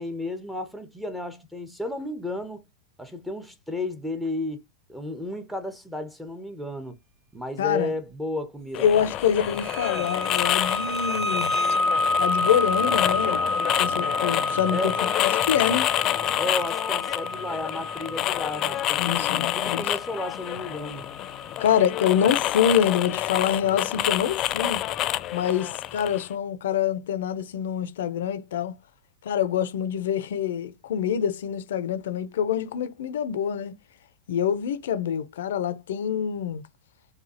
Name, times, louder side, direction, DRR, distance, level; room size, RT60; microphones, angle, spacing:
voice 1, 0.0-2.7 3.0-4.6 4.9-7.0 7.3-9.2 14.6-14.9 16.4-21.1, left 2 dB, 5° right, 0.9 m, -33 dB
voice 2, 7.6-7.9 8.7-11.6 12.2-13.4 13.8-14.9 15.2-15.9 19.0-19.8 21.6-24.8 25.3-28.8 29.2-33.8 34.3-36.6, left 9 dB, 65° left, 0.6 m, -25 dB
sound 1, 8.7-26.3, left 13 dB, 40° left, 0.3 m, -28 dB
sound 2, 9.4-22.0, left 2 dB, 25° right, 2.1 m, -29 dB
4.8 x 2.4 x 2.8 m
figure-of-eight pair, 95°, 0 cm